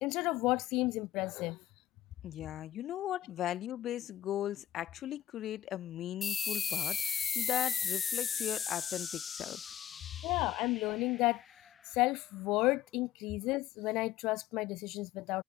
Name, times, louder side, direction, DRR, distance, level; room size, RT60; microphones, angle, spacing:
voice 1, 0.0-1.6 10.2-11.4 11.8-15.4, left 20 dB, 70° left, 1.0 m, -32 dB
voice 2, 2.2-9.7, left 12 dB, 50° left, 2.6 m, -38 dB
sound 1, 6.2-11.4, left 6 dB, 30° left, 4.2 m, -35 dB
cardioid pair, 120°, 0 cm